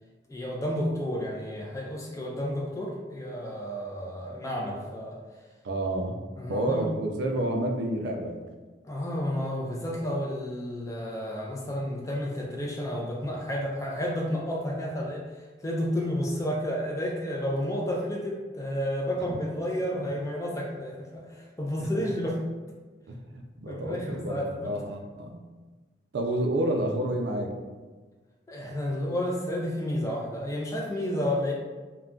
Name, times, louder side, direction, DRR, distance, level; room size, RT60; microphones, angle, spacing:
voice 1, 0.3-5.2 6.4-6.9 8.8-15.2 15.6-22.4 23.7-24.7 28.5-31.5, equal, 15° left, -2 dB, 0.4 m, -31 dB
voice 2, 5.6-6.2 6.5-8.4 19.1-19.2 21.8-21.9 23.1-25.4 26.1-27.5, right 1 dB, 65° right, 3 dB, 0.4 m, -29 dB
2.3 x 2.2 x 3.7 m, 1.3 s
head